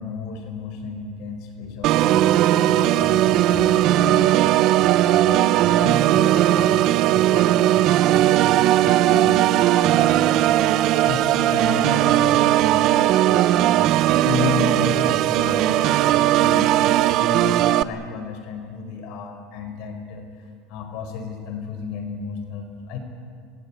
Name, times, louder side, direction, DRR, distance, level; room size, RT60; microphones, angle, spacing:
voice 1, 0.0-4.6 5.0-13.8 14.2-16.9 17.2-23.0, left 4 dB, 55° left, 6 dB, 4.7 m, -33 dB
Organ, 1.8-17.8, right 13 dB, 45° right, 0.6 m, -18 dB
28.0 x 16.5 x 8.6 m, 2.2 s
supercardioid pair, 150°, 0 cm